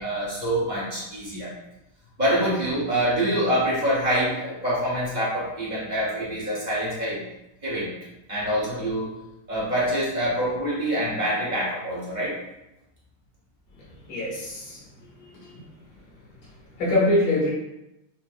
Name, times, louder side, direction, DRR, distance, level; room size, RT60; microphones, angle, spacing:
voice 1, 0.0-1.5 2.2-7.2 7.6-7.9 8.3-9.1 9.5-12.4, right 1 dB, 35° right, -7 dB, 0.7 m, -25 dB
voice 2, 13.7-15.6 16.4-17.5, left 1 dB, 85° left, -6 dB, 2.4 m, -26 dB
5.9 x 2.5 x 2.5 m, 0.90 s
omnidirectional pair, 2.3 m